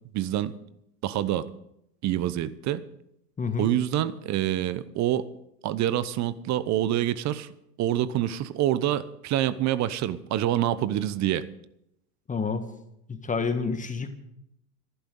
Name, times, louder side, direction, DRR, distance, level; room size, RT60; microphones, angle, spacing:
voice 1, 0.1-0.6 1.0-1.5 2.0-2.8 3.6-5.3 5.6-7.5 7.8-11.5, right 12 dB, 35° right, 16 dB, 0.9 m, -26 dB
voice 2, 3.4-3.7 12.3-12.7 13.1-14.1, left 5 dB, 15° left, 8 dB, 1.4 m, -28 dB
26.0 x 11.5 x 3.8 m, 0.79 s
hypercardioid pair, 105°, 48 cm